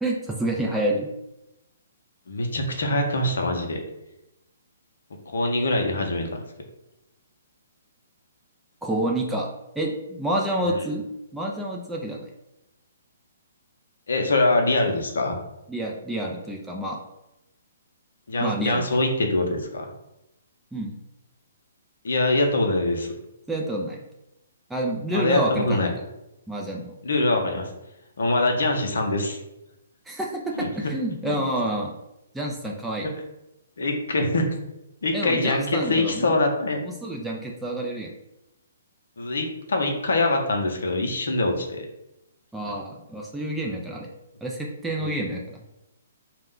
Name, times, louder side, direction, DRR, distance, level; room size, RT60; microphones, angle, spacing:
voice 1, 0.0-1.1 8.8-9.5 9.8-11.0 11.3-12.3 15.7-17.0 18.4-18.8 20.7-20.9 23.5-24.0 24.7-25.9 26.5-26.9 30.1-31.9 32.3-33.1 35.1-36.4 36.8-38.1 42.5-44.1 44.4-45.6, right 1 dB, 5° right, -2 dB, 0.4 m, -28 dB
voice 2, 2.3-3.8 5.3-6.4 10.7-10.8 14.1-15.4 18.3-19.9 22.0-23.1 25.1-25.9 27.0-27.7 28.2-29.4 30.6-30.7 31.2-31.4 33.8-34.5 35.0-36.8 39.2-41.9 44.9-45.1, left 2 dB, 70° left, 3 dB, 0.6 m, -24 dB
2.3 x 2.1 x 3.6 m, 0.90 s
figure-of-eight pair, 130°, 0 cm